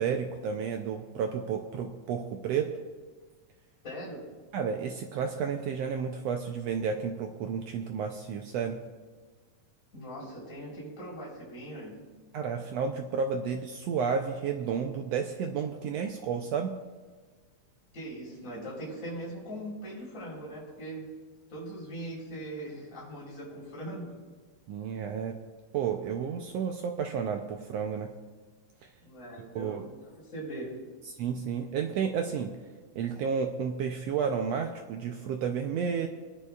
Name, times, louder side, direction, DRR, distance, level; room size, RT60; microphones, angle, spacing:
voice 1, 0.0-2.7 4.5-8.8 12.3-16.7 24.7-25.4 25.7-28.1 29.5-29.8 31.2-32.5 33.0-36.1, right 6 dB, 85° right, 4 dB, 1.4 m, -31 dB
voice 2, 3.8-4.2 9.9-12.0 17.9-21.1 21.5-24.1 29.0-30.7, right 1 dB, 25° left, -6 dB, 4.2 m, -40 dB
22.0 x 9.9 x 2.4 m, 1.4 s
omnidirectional pair, 3.6 m